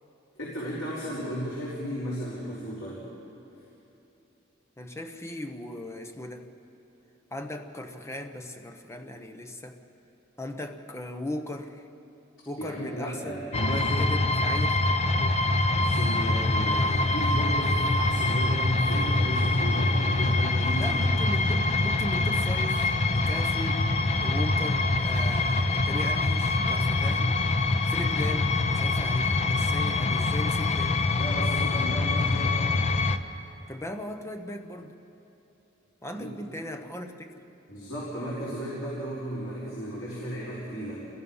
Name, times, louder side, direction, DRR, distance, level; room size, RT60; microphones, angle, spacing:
voice 1, 0.3-3.0 12.6-14.2 15.7-21.0 31.2-32.6 36.2-36.3 37.7-41.1, equal, 85° left, -7 dB, 4.6 m, -35 dB
voice 2, 4.8-6.5 7.3-9.8 10.4-11.8 12.5-15.6 20.8-23.9 24.2-27.3 27.9-31.0 33.7-34.9 36.0-37.4, left 1 dB, 15° left, 6 dB, 1.1 m, -38 dB
sound 1, 13.5-33.2, left 2 dB, 35° left, 0.8 m, -25 dB
28.5 x 21.5 x 5.6 m, 3.0 s
head